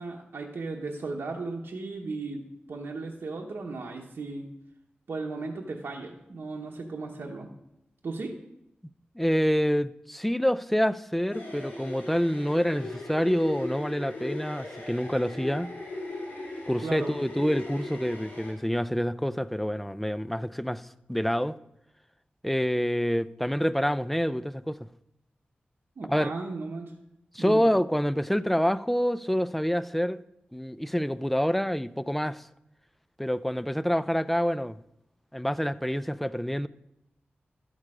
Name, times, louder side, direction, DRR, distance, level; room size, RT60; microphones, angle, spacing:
voice 1, 0.0-2.4 2.7-4.4 5.1-7.5 8.0-8.4 16.8-17.1 26.0-27.0 27.4-27.6, right 3 dB, 75° right, 1.0 m, -36 dB
voice 2, 9.2-15.7 16.7-21.6 22.4-24.8 26.0-26.3 27.3-30.2 30.5-32.5 33.2-34.8 35.3-36.7, equal, 5° left, 0.4 m, -27 dB
sound 1, 11.3-18.5, left 2 dB, 55° left, 3.8 m, -38 dB
12.0 x 6.5 x 4.9 m
wide cardioid pair, 85°, 4 cm